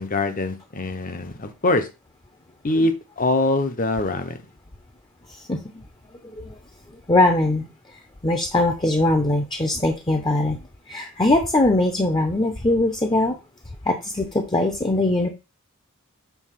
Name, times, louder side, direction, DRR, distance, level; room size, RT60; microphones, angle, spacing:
voice 1, 0.0-1.9 2.6-4.4, left 2 dB, 40° left, 8 dB, 1.0 m, -23 dB
voice 2, 5.3-5.6 6.3-6.6 7.1-10.6 10.9-13.4 13.8-15.3, left 2 dB, 20° left, 4 dB, 0.8 m, -21 dB
7.1 x 3.5 x 5.8 m, 0.28 s
head